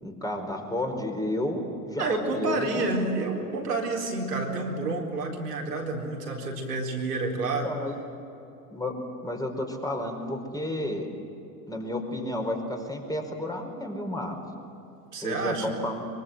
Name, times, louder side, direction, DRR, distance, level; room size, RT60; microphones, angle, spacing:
voice 1, 0.0-2.8 7.6-7.9 8.7-8.9 9.2-11.1 11.7-14.4 15.2-16.1, left 1 dB, 10° left, 3 dB, 4.8 m, -31 dB
voice 2, 2.0-7.7 15.1-15.8, right 3 dB, 85° right, 0 dB, 4.3 m, -29 dB
24.0 x 23.5 x 7.9 m, 2.9 s
figure-of-eight pair, 75°, 47 cm